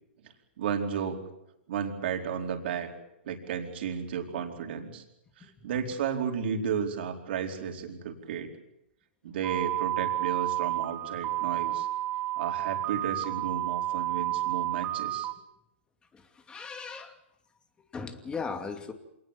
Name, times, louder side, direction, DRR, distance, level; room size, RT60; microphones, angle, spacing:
voice 1, 0.6-1.2 1.7-2.9 3.3-5.0 5.4-8.5 9.2-11.9 12.4-15.3, right 7 dB, 60° right, 3 dB, 4.6 m, -33 dB
sound 1, 9.4-15.3, right 15 dB, 30° right, 1.2 m, -31 dB
voice 2, 16.1-17.1 17.9-18.9, left 5 dB, 15° left, 7 dB, 2.6 m, -38 dB
26.5 x 19.5 x 7.5 m, 0.84 s
hypercardioid pair, 130°, 6 cm